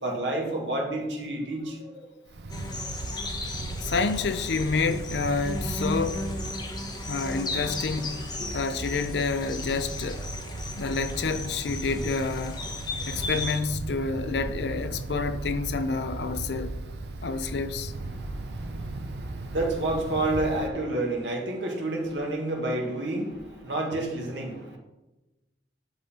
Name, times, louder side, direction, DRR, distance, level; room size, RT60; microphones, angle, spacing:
voice 1, 0.0-2.1 2.8-3.2 3.6-3.7 6.6-6.7 8.4-8.6 18.0-24.8, right 2 dB, 90° right, 1.7 m, -30 dB
Wind, 2.3-20.7, right 2 dB, 70° right, 0.6 m, -37 dB
sound 1, 2.5-13.6, left 2 dB, 25° left, 0.9 m, -36 dB
voice 2, 3.8-6.4 7.1-10.2 10.8-12.7 13.0-16.7 17.2-17.9, left 4 dB, 70° left, 0.5 m, -29 dB
10.5 x 4.0 x 4.2 m
head